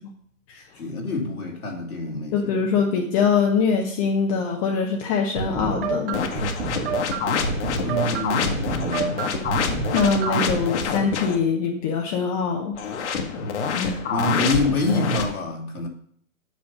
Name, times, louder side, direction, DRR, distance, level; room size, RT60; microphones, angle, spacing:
voice 1, 0.8-2.4 7.8-9.2 13.8-15.9, left 2 dB, 85° left, 0 dB, 2.7 m, -27 dB
voice 2, 2.3-6.5 9.9-12.8 13.6-14.0, left 5 dB, 25° left, 1 dB, 0.8 m, -23 dB
sound 1, 5.4-10.5, right 6 dB, 40° right, 1.3 m, -29 dB
sound 2, 6.1-11.4 12.7-15.2, left 5 dB, 55° left, 1.5 m, -26 dB
8.1 x 5.6 x 5.4 m, 0.62 s
hypercardioid pair, 140°, 43 cm